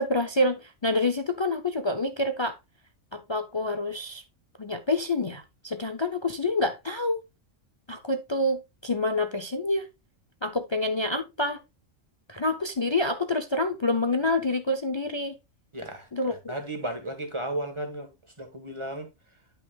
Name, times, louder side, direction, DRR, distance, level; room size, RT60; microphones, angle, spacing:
voice 1, 0.0-2.6 3.1-4.2 4.6-7.2 7.9-9.9 10.4-11.6 12.3-15.4 16.1-16.5, left 2 dB, 45° left, 0.3 m, -27 dB
voice 2, 15.7-16.1 16.5-18.1 18.4-19.1, right 1 dB, 25° right, 1.3 m, -34 dB
10.5 x 5.7 x 2.3 m
omnidirectional pair, 1.4 m